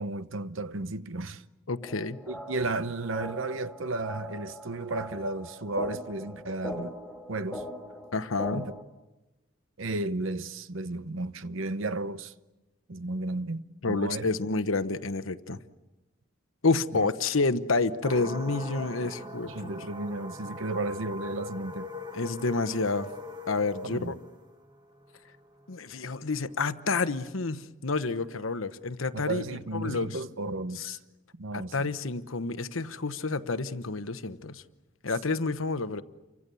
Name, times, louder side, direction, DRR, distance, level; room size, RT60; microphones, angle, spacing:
voice 1, 0.0-1.4 2.3-6.9 7.3-7.6 8.5-8.7 9.8-12.3 12.9-14.3 16.9-17.1 19.5-21.9 23.8-24.2 29.1-31.0 31.3-31.9, right 2 dB, 80° right, 0.9 m, -33 dB
voice 2, 1.7-2.2 8.1-8.7 13.8-15.6 16.6-19.7 22.1-23.1 23.5-24.2 25.7-29.4 29.7-30.1 30.8-31.0 31.5-34.6 35.0-36.0, left 3 dB, 85° left, 1.0 m, -29 dB
sound 1, 1.8-8.8, left 1 dB, ahead, 2.3 m, -41 dB
sound 2, 18.0-26.9, left 1 dB, 20° right, 1.3 m, -42 dB
29.5 x 25.0 x 7.0 m
head